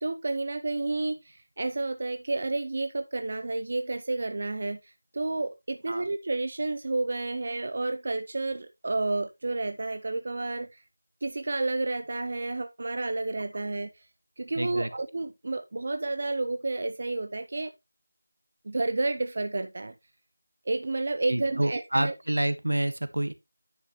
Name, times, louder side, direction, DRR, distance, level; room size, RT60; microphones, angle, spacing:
voice 1, 0.0-10.8 11.2-13.9 14.4-17.7 18.6-19.9 20.7-22.1, right 2 dB, 35° right, 0.6 m, -30 dB
voice 2, 14.5-14.9 21.3-23.3, right 1 dB, 80° right, 1.4 m, -28 dB
10.0 x 6.4 x 3.1 m
figure-of-eight pair, 175°, 0 cm